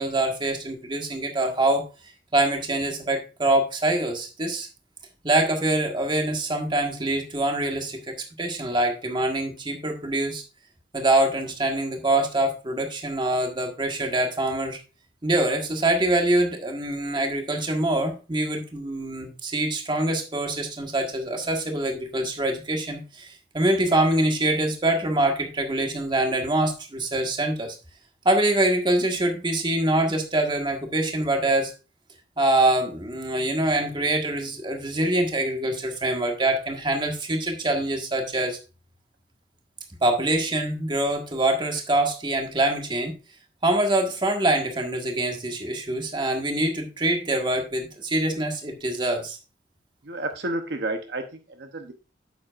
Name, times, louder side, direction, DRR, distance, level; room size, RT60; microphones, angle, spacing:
voice 1, 0.0-1.8 2.3-4.7 5.2-10.4 10.9-14.8 15.2-27.8 28.2-31.7 32.4-38.6 40.0-43.1 43.6-49.4, right 1 dB, 25° right, 3 dB, 1.6 m, -24 dB
voice 2, 50.0-51.9, right 2 dB, 65° right, 6 dB, 0.9 m, -31 dB
9.6 x 7.4 x 2.5 m, 0.31 s
head